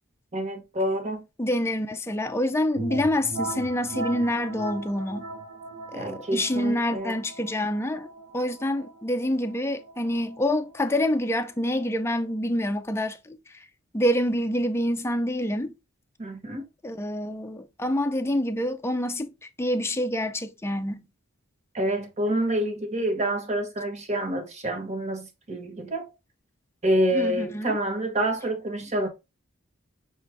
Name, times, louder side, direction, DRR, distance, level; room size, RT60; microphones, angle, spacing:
voice 1, 0.3-1.2 5.9-7.1 16.2-16.7 21.7-26.1 26.8-29.1, right 1 dB, 35° right, 1.0 m, -27 dB
voice 2, 1.4-5.3 5.9-8.1 8.3-13.7 13.9-15.7 16.8-19.3 19.6-21.1 27.1-27.7, left 1 dB, 10° left, 0.4 m, -27 dB
sound 1, 2.7-12.3, right 2 dB, 80° right, 0.9 m, -39 dB
6.0 x 2.4 x 3.3 m
head